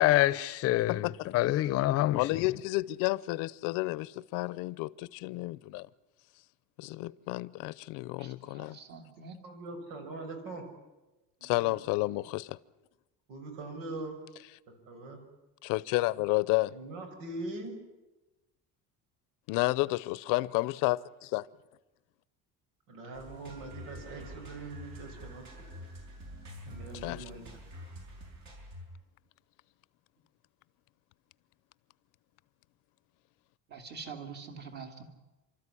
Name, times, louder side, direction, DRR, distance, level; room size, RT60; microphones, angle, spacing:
voice 1, 0.0-2.5, left 15 dB, 50° left, 0.7 m, -26 dB
voice 2, 2.1-5.9 6.8-8.8 11.4-12.6 15.6-16.7 19.5-21.0 21.3-21.4 27.0-27.2, left 21 dB, 80° left, 0.7 m, -31 dB
voice 3, 8.2-9.4 33.7-35.0, right 5 dB, 30° right, 2.5 m, -45 dB
voice 4, 9.4-10.6 11.4-11.7 13.3-14.3 14.9-15.2 16.7-17.8 22.9-25.4 26.7-27.4, right 2 dB, 85° right, 6.3 m, -42 dB
sound 1, 23.1-28.8, equal, 60° right, 7.3 m, -47 dB
29.5 x 13.5 x 9.9 m
cardioid pair, 175°, 32 cm